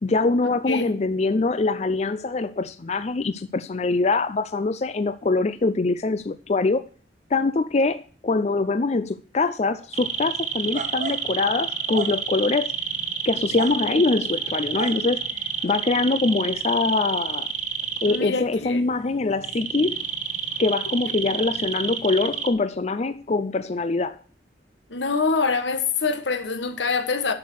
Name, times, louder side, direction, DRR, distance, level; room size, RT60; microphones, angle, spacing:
voice 1, 0.0-6.9 7.3-12.7 13.2-17.5 18.0-20.0 20.6-24.2, left 3 dB, 35° left, 0.4 m, -23 dB
sound 1, 9.9-22.5, right 6 dB, 45° right, 1.3 m, -29 dB
voice 2, 18.1-18.8 24.9-27.3, left 4 dB, 80° left, 1.5 m, -25 dB
10.5 x 6.5 x 6.3 m
head